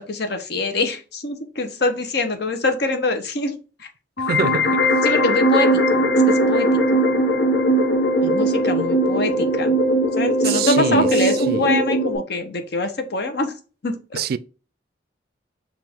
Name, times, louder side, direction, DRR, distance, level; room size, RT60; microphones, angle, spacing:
voice 1, 0.0-3.9 5.0-7.0 8.2-9.8 10.2-13.5 13.8-14.2, left 2 dB, 65° left, 0.9 m, -25 dB
sound 1, 4.2-12.2, right 1 dB, 90° left, 1.1 m, -19 dB
voice 2, 4.2-4.9 10.4-11.1 11.5-11.6 14.1-14.4, right 6 dB, 55° right, 0.3 m, -25 dB
5.7 x 2.5 x 3.5 m
head